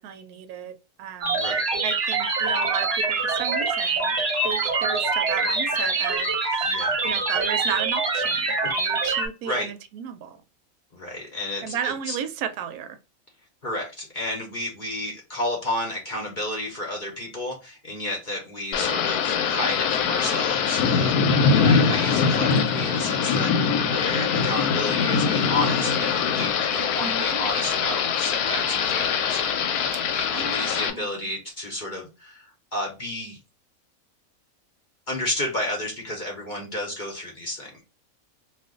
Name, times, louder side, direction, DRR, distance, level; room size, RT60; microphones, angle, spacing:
voice 1, 0.0-1.4 1.8-4.2 4.4-6.7 7.0-10.4 11.6-13.0 27.0-27.5 29.9-31.3, right 8 dB, 80° right, 1.1 m, -34 dB
sound 1, 1.2-9.3, right 3 dB, 50° right, 0.9 m, -24 dB
voice 2, 1.3-1.7 6.6-7.0 9.4-9.7 10.9-12.1 13.6-33.4 35.1-37.8, left 1 dB, 40° left, 0.8 m, -32 dB
Thunder / Rain, 18.7-30.9, left 6 dB, 90° left, 1.1 m, -23 dB
2.4 x 2.4 x 3.6 m
omnidirectional pair, 1.6 m